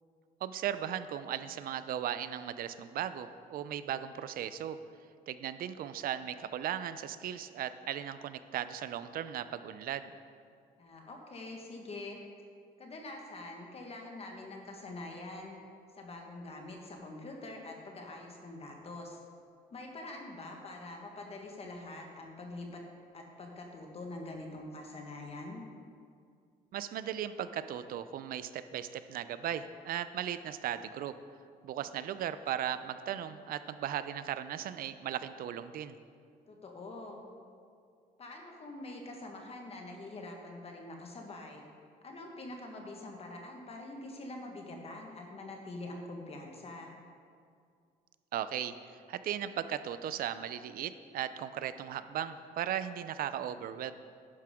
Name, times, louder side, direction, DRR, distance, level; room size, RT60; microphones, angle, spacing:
voice 1, 0.4-4.8 5.3-10.1 26.7-31.1 31.6-36.0 48.3-48.7 49.1-53.9, right 10 dB, 60° right, 13 dB, 0.5 m, -37 dB
voice 2, 10.8-12.2 12.8-15.6 15.9-19.2 19.7-22.8 23.1-25.6 36.5-37.2 38.2-41.7 42.0-46.9, left 2 dB, 35° left, 1 dB, 1.5 m, -45 dB
11.0 x 10.5 x 3.7 m, 2.2 s
cardioid pair, 110°, 17 cm